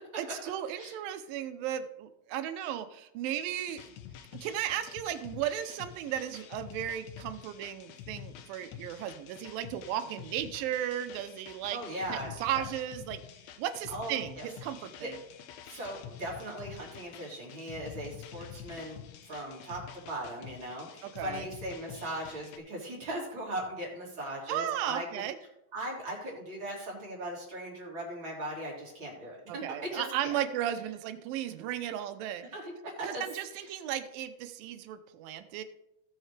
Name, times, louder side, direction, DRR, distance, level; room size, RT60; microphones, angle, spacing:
voice 1, 0.2-3.9 4.4-11.8 12.1-13.2 13.6-15.2 21.0-21.5 24.5-25.4 29.5-32.4 33.0-35.6, right 11 dB, 80° right, 10 dB, 2.5 m, -35 dB
sound 1, 3.3-22.6, left 10 dB, 85° left, 1.5 m, -48 dB
voice 2, 11.7-12.6 13.9-14.5 15.0-15.1 15.7-25.0 25.7-29.6 29.9-30.4 32.5-33.2 33.6-33.7, right 1 dB, 35° right, -4 dB, 3.5 m, -39 dB
17.0 x 6.5 x 3.3 m, 0.87 s
omnidirectional pair, 4.1 m